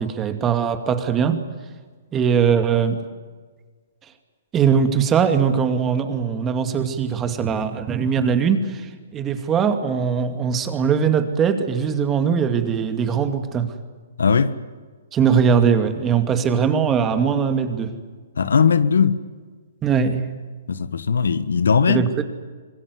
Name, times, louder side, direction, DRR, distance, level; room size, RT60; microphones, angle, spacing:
voice 1, 0.0-1.4 2.1-3.0 4.5-13.7 15.1-17.9 19.8-20.2 21.9-22.2, right 7 dB, 20° right, 8 dB, 2.4 m, -20 dB
voice 2, 14.2-14.5 18.4-19.2 20.7-22.0, left 6 dB, 85° left, 14 dB, 1.4 m, -18 dB
25.5 x 20.5 x 9.7 m, 1.4 s
hypercardioid pair, 140°, 0 cm